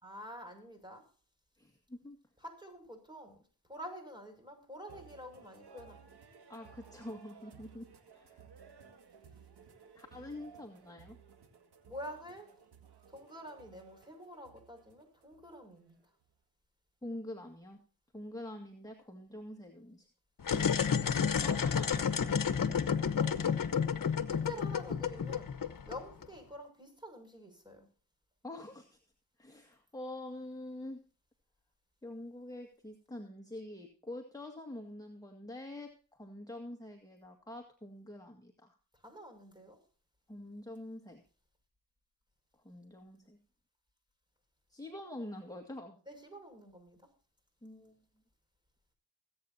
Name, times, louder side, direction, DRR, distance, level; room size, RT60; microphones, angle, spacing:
voice 1, 0.0-1.0 2.4-3.4 3.7-6.0 11.9-12.5 13.1-16.0 23.1-24.0 24.3-25.5 25.8-27.9 39.0-39.8 46.0-47.0, equal, 10° right, 4 dB, 6.4 m, -48 dB
voice 2, 1.6-2.2 6.5-7.9 8.1-8.4 9.9-11.2 17.0-17.8 18.1-20.1 21.4-22.8 28.4-29.0 29.4-31.0 32.0-38.7 40.3-41.2 42.6-43.4 44.7-46.0 47.6-48.0, left 1 dB, 10° left, 3 dB, 2.0 m, -46 dB
sound 1, 4.9-16.2, right 6 dB, 85° right, 2.1 m, -58 dB
sound 2, 20.4-26.2, left 7 dB, 60° left, 1.2 m, -31 dB
21.0 x 8.8 x 2.8 m, 0.42 s
cardioid pair, 50°, 38 cm